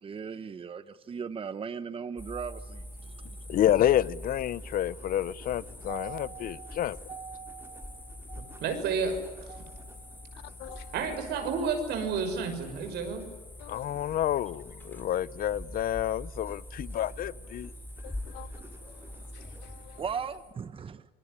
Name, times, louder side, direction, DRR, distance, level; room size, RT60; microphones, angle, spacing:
voice 1, 0.0-3.4 5.9-8.6 9.5-10.9 20.0-21.1, right 6 dB, 30° right, 1.1 m, -40 dB
sound 1, 2.2-20.5, left 1 dB, 10° left, 4.3 m, -44 dB
sound 2, 2.6-20.3, right 2 dB, 15° right, 5.8 m, -57 dB
voice 2, 3.5-7.0 13.7-17.7, left 12 dB, 60° left, 0.8 m, -29 dB
voice 3, 8.6-9.6 10.9-13.3, right 5 dB, 75° right, 6.1 m, -31 dB
voice 4, 10.6-10.9 13.6-13.9 18.0-20.0, left 17 dB, 85° left, 0.8 m, -49 dB
27.0 x 21.5 x 9.8 m
cardioid pair, 110°, 17 cm